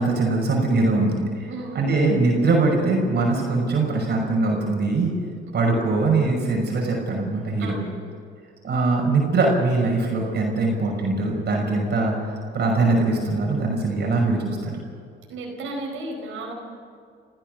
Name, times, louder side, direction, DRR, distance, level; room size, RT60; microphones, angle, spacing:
voice 1, 0.0-1.5 1.7-5.1 5.5-7.8 8.6-12.1 12.5-14.7, right 3 dB, 60° right, 0 dB, 6.0 m, -22 dB
voice 2, 1.5-1.8 7.6-7.9 15.3-16.5, right 2 dB, 85° right, 0 dB, 4.8 m, -33 dB
27.0 x 15.0 x 6.6 m, 2.2 s
cardioid pair, 90°, 20 cm